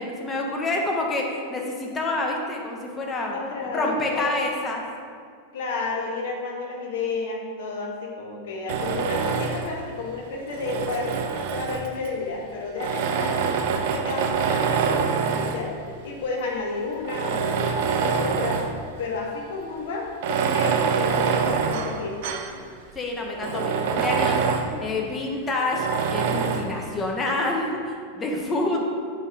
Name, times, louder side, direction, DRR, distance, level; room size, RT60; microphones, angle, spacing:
voice 1, 0.0-3.4 3.7-4.8 22.9-24.4 24.8-28.8, left 2 dB, 20° left, 0 dB, 0.9 m, -27 dB
voice 2, 3.3-4.3 5.5-13.5 13.9-15.7 16.0-18.6 19.0-22.6 23.5-24.1 24.5-25.0, left 3 dB, 55° left, 0 dB, 1.0 m, -31 dB
Tools, 8.7-9.8 10.5-12.1 12.8-15.7 16.4-16.5 17.0-18.8 19.1-19.2 20.1-22.6 23.0-23.1 23.4-24.8 25.7-26.7, right 6 dB, 50° right, 0.4 m, -25 dB
7.4 x 5.0 x 2.5 m, 2.1 s
figure-of-eight pair, 90°, 0 cm